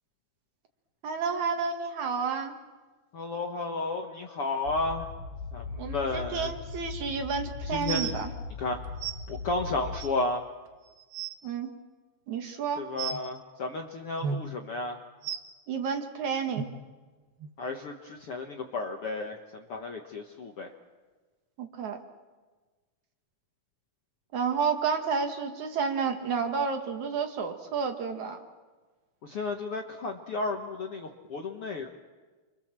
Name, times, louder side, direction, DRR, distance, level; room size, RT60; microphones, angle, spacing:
voice 1, 1.0-2.5 5.8-8.3 11.4-11.7 12.3-12.8 15.7-16.7 21.6-22.0 24.3-28.4, right 6 dB, 60° right, 5 dB, 2.6 m, -30 dB
voice 2, 3.1-5.1 5.5-6.5 7.6-8.1 8.6-8.8 9.3-10.4 12.8-15.0 17.6-20.7 29.2-31.9, left 3 dB, 55° left, 3 dB, 1.6 m, -33 dB
sound 1, 4.7-10.1, left 4 dB, 85° left, 3.2 m, -39 dB
sound 2, 7.8-8.1 9.0-9.1 10.0-10.1 10.7-10.8 11.0-11.3 13.0-13.2 14.2-14.4 15.2-15.4 16.6-16.7 17.4-17.5 18.2-18.3, right 7 dB, 80° right, 3.3 m, -33 dB
29.0 x 24.5 x 7.6 m, 1.3 s
omnidirectional pair, 4.3 m